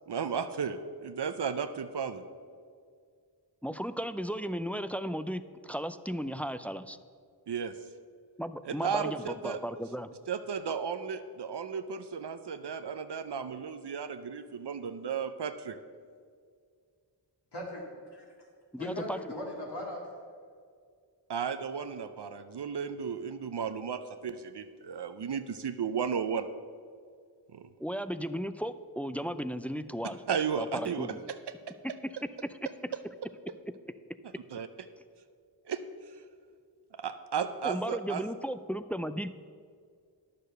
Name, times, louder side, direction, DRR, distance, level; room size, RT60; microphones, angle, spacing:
voice 1, 0.1-2.2 7.5-7.7 8.6-9.6 10.3-15.8 21.3-26.5 27.5-27.7 30.3-31.1 34.5-34.7 35.7-35.8 36.1-36.2 37.0-38.2, right 6 dB, 65° right, 10 dB, 0.6 m, -34 dB
voice 2, 3.6-7.0 8.4-10.1 18.7-19.2 27.8-30.2 30.6-31.2 37.6-39.3, equal, 5° left, 12 dB, 0.4 m, -35 dB
voice 3, 17.5-18.5 18.8-20.1, left 1 dB, 60° left, -2 dB, 2.1 m, -39 dB
10.5 x 6.8 x 6.6 m, 2.1 s
wide cardioid pair, 55°, 44 cm